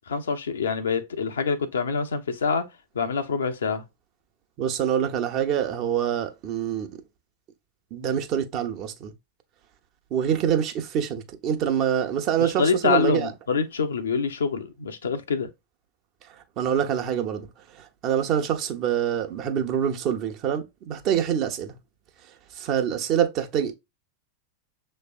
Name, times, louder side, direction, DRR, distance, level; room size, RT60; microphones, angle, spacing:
voice 1, 0.1-2.6 2.9-3.8 12.4-15.5, left 5 dB, 75° left, 0.8 m, -26 dB
voice 2, 4.6-6.9 7.9-9.1 10.1-13.3 16.6-17.5 17.8-21.7 22.5-23.7, right 9 dB, 40° right, 1.0 m, -25 dB
6.7 x 3.2 x 2.4 m
figure-of-eight pair, 95°, 0 cm